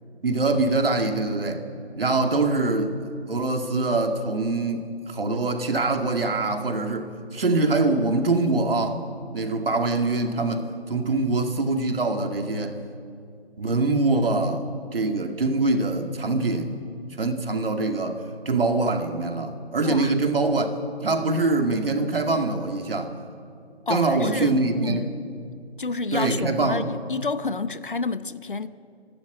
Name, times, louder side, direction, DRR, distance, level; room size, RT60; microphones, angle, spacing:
voice 1, 0.2-1.6 2.0-3.0 3.3-9.0 9.3-12.8 13.6-14.6 14.9-16.8 17.2-20.8 21.0-23.2 23.9-25.1 26.1-26.9, right 3 dB, 55° right, 2.3 m, -24 dB
voice 2, 19.8-20.1 23.9-25.0 25.8-28.7, left 4 dB, 50° left, 0.8 m, -29 dB
26.5 x 12.0 x 8.1 m
hypercardioid pair, 175°, 33 cm